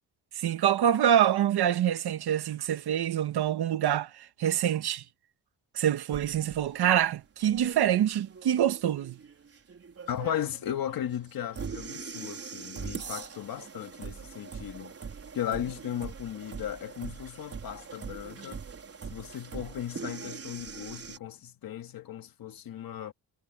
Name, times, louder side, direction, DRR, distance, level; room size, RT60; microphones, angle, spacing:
voice 1, 0.4-5.0 5.7-9.2, right 10 dB, 85° right, 1.5 m, -26 dB
sound 1, 6.1-21.2, right 6 dB, 40° right, 4.6 m, -42 dB
voice 2, 10.1-14.9 15.3-18.6 19.1-23.1, left 10 dB, 65° left, 2.0 m, -36 dB
wide cardioid pair, 170°, 38 cm